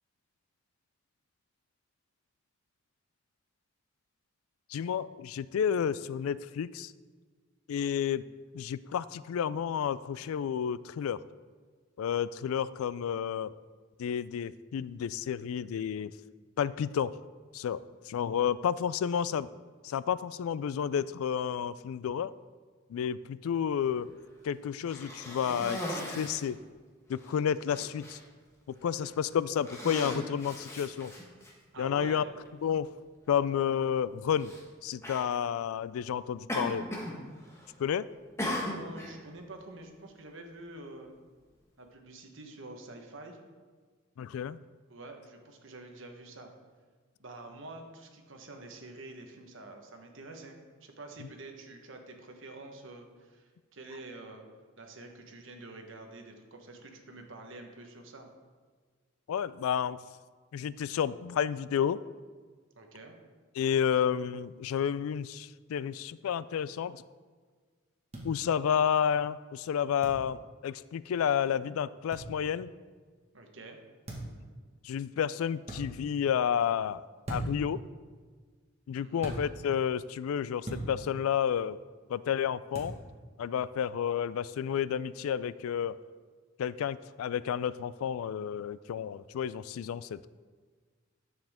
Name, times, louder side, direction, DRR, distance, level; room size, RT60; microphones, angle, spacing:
voice 1, 4.7-6.9 7.7-8.3 8.5-11.2 12.0-13.5 14.0-16.1 16.6-17.2 17.5-19.5 19.8-22.3 22.9-24.1 24.4-26.6 27.1-28.2 28.7-31.1 31.8-32.2 32.6-32.9 33.3-34.5 34.8-36.9 37.8-38.1 44.2-44.6 59.3-60.0 60.5-62.0 63.6-67.0 68.2-72.7 74.8-77.0 77.3-77.8 78.9-81.8 82.1-82.9 83.4-86.0 86.6-90.3, left 8 dB, 85° left, 18 dB, 0.3 m, -31 dB
Cough, 24.8-26.5 27.2-27.3 27.7-28.2 28.9-29.2 29.6-31.5 32.5-32.6 34.4-34.6 35.0-35.3 36.5-37.2 37.4-37.9 38.4-39.1, left 1 dB, 15° left, 1.2 m, -37 dB
voice 2, 31.7-32.3 38.4-41.1 41.8-43.4 44.9-46.5 47.2-54.4 54.8-58.3 62.8-63.1 73.3-73.8 79.0-79.3, right 2 dB, 65° right, 3 dB, 1.2 m, -47 dB
sound 1, 68.1-68.3 70.0-70.2 72.1-72.3 74.0-74.4 75.6-75.8 77.2-77.7 79.2-79.4 80.6-80.9 82.7-82.9, right 1 dB, 30° right, 1.5 m, -37 dB
10.5 x 7.3 x 3.6 m, 1.5 s
head